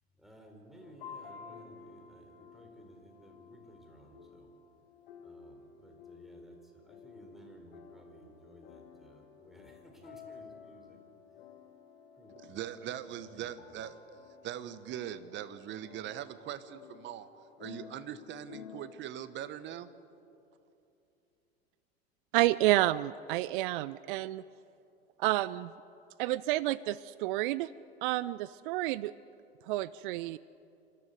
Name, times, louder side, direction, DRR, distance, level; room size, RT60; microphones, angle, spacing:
voice 1, 0.2-4.5 5.2-11.0 12.2-12.9 13.2-13.8, equal, ahead, 1 dB, 4.6 m, -57 dB
sound 1, 0.8-18.9, left 6 dB, 60° left, 2.0 m, -53 dB
voice 2, 12.4-13.9 14.4-17.3 17.6-19.9, right 11 dB, 35° right, 13 dB, 1.2 m, -41 dB
voice 3, 22.3-24.4 25.2-25.7 26.2-27.7 28.0-29.1 29.7-30.4, right 16 dB, 55° right, 18 dB, 0.5 m, -29 dB
26.0 x 13.5 x 8.1 m, 2.7 s
figure-of-eight pair, 85°, 31 cm